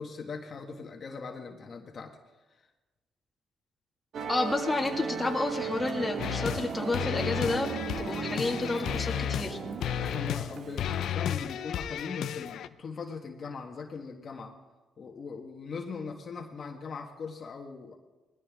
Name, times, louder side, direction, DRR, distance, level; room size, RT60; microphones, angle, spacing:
voice 1, 0.0-2.2 2.5-2.7 10.0-14.6 15.0-18.0, left 5 dB, 50° left, 2 dB, 1.6 m, -40 dB
Musical instrument, 4.1-11.1, right 6 dB, 60° right, 1.2 m, -36 dB
voice 2, 4.3-9.6, left 2 dB, 20° left, 1 dB, 2.0 m, -30 dB
sound 1, 6.2-6.7 6.9-9.5 9.8-10.5 10.8-12.7, left 10 dB, 75° left, 0.6 m, -33 dB
20.0 x 14.0 x 3.7 m, 1.2 s
cardioid pair, 90°, 0 cm